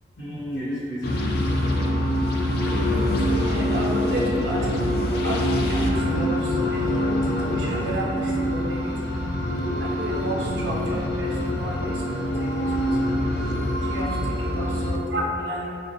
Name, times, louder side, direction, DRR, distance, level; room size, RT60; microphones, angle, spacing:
voice 1, 0.2-1.9 3.9-4.0 14.2-14.5, equal, 75° left, -11 dB, 0.9 m, -34 dB
sound 1, 1.0-15.0, left 1 dB, 60° left, 0.4 m, -24 dB
voice 2, 3.2-4.7 4.9-7.1 7.4-9.2 9.8-12.0 12.4-12.7 13.0-13.1 13.8-15.7, right 1 dB, 70° right, -4 dB, 0.6 m, -32 dB
5.0 x 2.1 x 2.7 m, 2.6 s
head